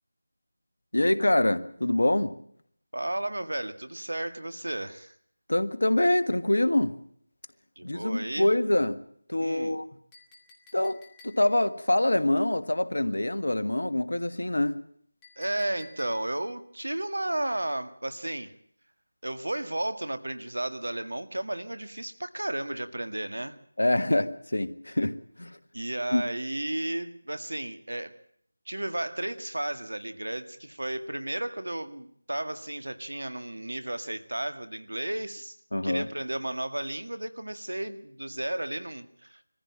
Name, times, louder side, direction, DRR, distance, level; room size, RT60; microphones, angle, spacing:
voice 1, 0.9-2.3 5.5-6.9 7.8-9.0 9.3-9.8 10.7-11.0 11.2-14.8 23.8-25.1 25.4-25.6 26.1-26.2 35.7-36.0, left 1 dB, 75° left, 11 dB, 1.5 m, -25 dB
voice 2, 2.9-5.2 7.8-8.5 9.4-9.8 15.4-18.5 19.2-23.6 25.7-28.2 28.7-35.6 35.8-39.4, right 1 dB, 75° right, 10 dB, 1.8 m, -33 dB
Chink clink, 10.1-11.7 15.2-16.5, left 3 dB, 10° left, 2.3 m, -54 dB
22.5 x 15.0 x 8.8 m, 0.66 s
figure-of-eight pair, 165°, 0 cm